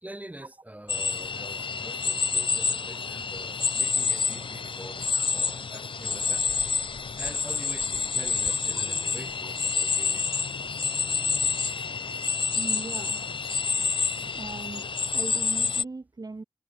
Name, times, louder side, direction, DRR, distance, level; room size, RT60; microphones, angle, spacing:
voice 1, 0.0-6.7 7.2-10.3, right 1 dB, 15° right, 3.9 m, -45 dB
sound 1, 0.9-15.8, left 5 dB, 60° left, 0.6 m, -28 dB
voice 2, 12.5-13.2 14.3-16.4, right 3 dB, 40° right, 1.5 m, -39 dB
wide cardioid pair, 80°, 10 cm